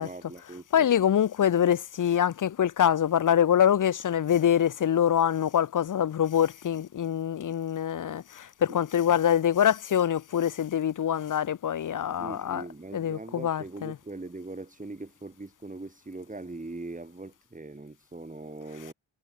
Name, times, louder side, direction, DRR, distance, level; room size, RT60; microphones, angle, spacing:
voice 1, 0.0-0.9 8.7-8.8 12.1-18.9, right 2 dB, 15° right, 1.5 m, -41 dB
voice 2, 0.7-12.6 12.9-14.0, left 9 dB, 45° left, 0.5 m, -25 dB
wide cardioid pair, 110°, 47 cm